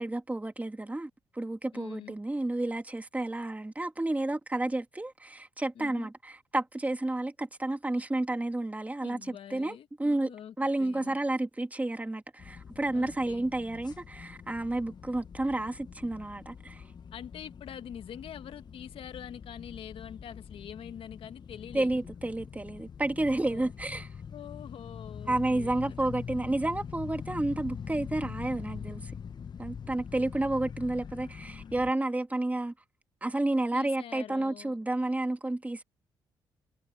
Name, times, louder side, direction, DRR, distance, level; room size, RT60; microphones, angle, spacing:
voice 1, 0.0-16.9 21.7-24.1 25.3-29.2 29.6-32.7 33.2-35.8, right 2 dB, 15° right, 2.1 m, -31 dB
voice 2, 1.7-2.1 5.7-6.1 9.0-11.1 12.9-13.4 17.1-21.9 23.5-23.7 24.3-26.0 33.7-34.8, left 9 dB, 65° left, 1.8 m, -45 dB
sound 1, 12.4-31.9, left 7 dB, 45° left, 1.0 m, -44 dB
supercardioid pair, 55°, 10 cm